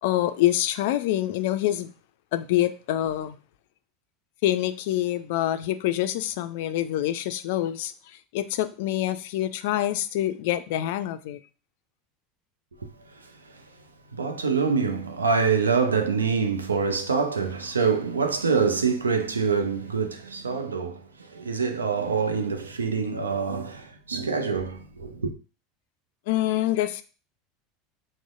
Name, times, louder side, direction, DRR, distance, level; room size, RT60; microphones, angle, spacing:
voice 1, 0.0-1.9 2.3-3.3 4.4-7.9 8.3-11.4 26.3-27.0, left 13 dB, 60° left, 0.3 m, -26 dB
voice 2, 14.1-21.0 21.3-25.3, right 5 dB, 80° right, 0.5 m, -25 dB
6.0 x 2.1 x 2.5 m
figure-of-eight pair, 75°, 0 cm